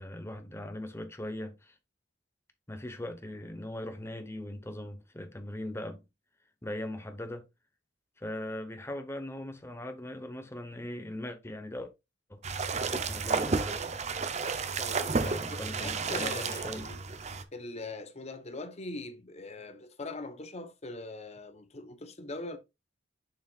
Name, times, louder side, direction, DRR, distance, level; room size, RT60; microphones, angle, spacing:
voice 1, 0.0-1.8 2.7-6.0 6.6-7.5 8.2-11.9 12.3-12.4 12.9-14.0 15.2-16.9, left 1 dB, 15° left, 1.0 m, -40 dB
sound 1, 12.4-17.4, right 4 dB, 35° right, 0.6 m, -32 dB
voice 2, 14.8-17.0 17.5-22.6, left 2 dB, 35° left, 0.9 m, -41 dB
6.7 x 6.7 x 2.4 m
head